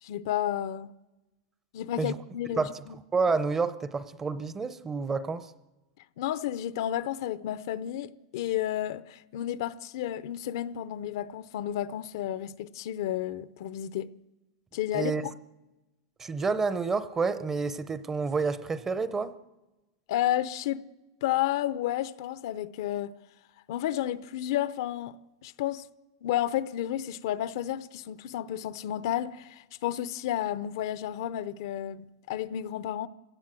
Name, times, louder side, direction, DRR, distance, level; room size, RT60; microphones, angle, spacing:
voice 1, 0.0-0.9 1.7-2.9 6.2-14.1 14.7-15.3 20.1-20.8 21.2-23.1 23.7-25.2 25.4-25.9 26.2-33.1, left 12 dB, 65° left, 0.7 m, -31 dB
voice 2, 3.1-5.5 14.9-15.2 16.2-19.3, right 4 dB, 15° right, 0.7 m, -29 dB
27.0 x 17.0 x 7.6 m
supercardioid pair, 145°, 2 cm